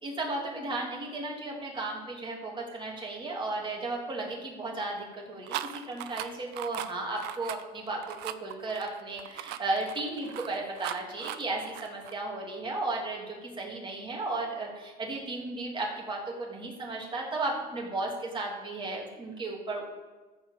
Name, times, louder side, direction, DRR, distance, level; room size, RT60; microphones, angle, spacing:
voice 1, 0.0-5.6 5.9-19.9, right 2 dB, 30° right, -2 dB, 2.9 m, -34 dB
sound 1, 5.4-12.1, right 13 dB, 85° right, 0.6 m, -39 dB
14.0 x 4.9 x 7.2 m, 1.2 s
cardioid pair, 110°, 17 cm